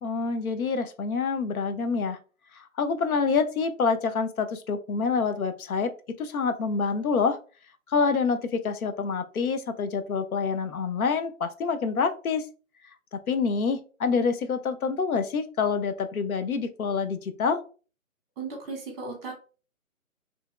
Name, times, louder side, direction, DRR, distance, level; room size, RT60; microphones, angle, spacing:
voice 1, 0.0-2.2 2.6-5.9 6.2-7.4 7.9-12.5 13.1-17.6, left 5 dB, 85° left, 9 dB, 0.6 m, -27 dB
voice 2, 18.4-19.3, right 4 dB, 15° right, 0 dB, 1.1 m, -36 dB
2.8 x 2.7 x 2.3 m, 0.36 s
figure-of-eight pair, 145°, 42 cm